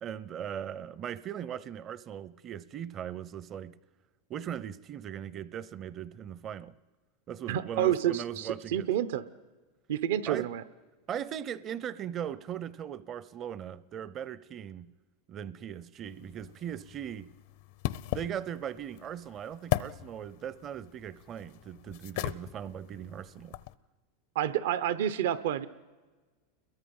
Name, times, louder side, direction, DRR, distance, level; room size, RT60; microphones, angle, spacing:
voice 1, 0.0-3.8 4.3-6.7 7.3-8.9 10.3-10.5 11.1-14.9 15.3-17.3 18.1-23.6, right 9 dB, 30° right, 0.6 m, -39 dB
voice 2, 7.5-9.2 9.9-10.6 24.3-25.7, right 11 dB, 75° right, 0.9 m, -29 dB
sound 1, 16.0-23.7, left 16 dB, 65° left, 0.6 m, -38 dB
29.5 x 22.0 x 5.5 m
supercardioid pair, 135°, 0 cm